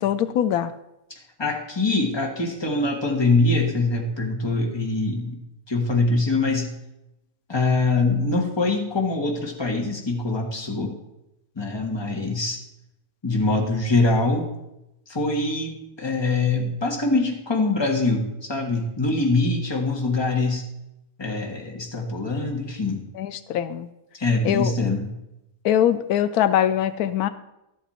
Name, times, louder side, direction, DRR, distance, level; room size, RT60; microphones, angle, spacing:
voice 1, 0.0-0.7 23.2-23.9 24.4-24.7 25.6-27.3, left 10 dB, 90° left, 13 dB, 1.1 m, -22 dB
voice 2, 1.1-5.4 5.7-6.7 7.5-11.0 11.5-12.6 13.2-14.5 15.1-20.7 21.2-23.0 24.2-25.1, left 3 dB, 20° left, 1 dB, 1.4 m, -23 dB
12.5 x 8.1 x 4.3 m, 0.89 s
omnidirectional pair, 1.5 m